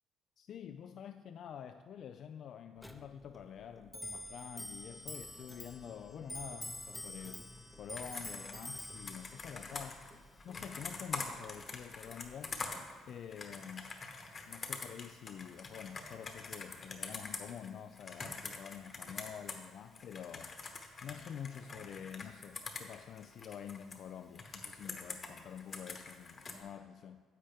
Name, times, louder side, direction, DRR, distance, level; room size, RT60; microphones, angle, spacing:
voice 1, 0.4-7.5 7.8-10.1 10.4-12.6 13.1-14.0 14.5-20.6 21.0-27.2, left 8 dB, 65° left, 8 dB, 0.3 m, -48 dB
Clock, 2.8-12.7, left 1 dB, 10° left, 0.7 m, -48 dB
Computer keyboard, 7.9-19.7 19.9-24.0 24.3-26.6, left 4 dB, 40° left, 1.1 m, -45 dB
10.0 x 7.6 x 3.5 m, 1.5 s
cardioid pair, 85°, 0 cm